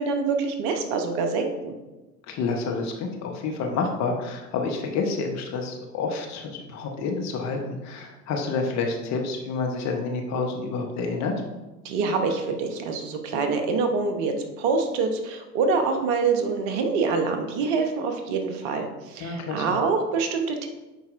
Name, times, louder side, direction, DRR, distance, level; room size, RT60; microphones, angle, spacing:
voice 1, 0.0-1.7 11.8-20.7, right 4 dB, 45° right, 6 dB, 1.0 m, -25 dB
voice 2, 2.3-11.3 19.2-19.6, left 4 dB, 35° left, 2 dB, 1.0 m, -29 dB
10.0 x 4.3 x 2.5 m, 1.1 s
figure-of-eight pair, 85°, 48 cm